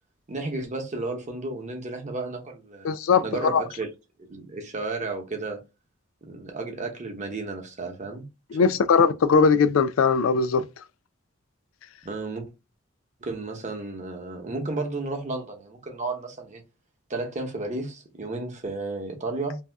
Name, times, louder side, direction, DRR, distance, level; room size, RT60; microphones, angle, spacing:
voice 1, 0.3-2.9 3.2-3.9 4.2-5.6 6.2-8.3 8.6-8.7 12.0-12.5 13.2-16.6 17.1-19.6, right 3 dB, 35° right, 0.8 m, -33 dB
voice 2, 2.8-3.2 3.5-3.6 8.5-10.7, left 5 dB, 80° left, 0.4 m, -20 dB
2.7 x 2.3 x 3.3 m
head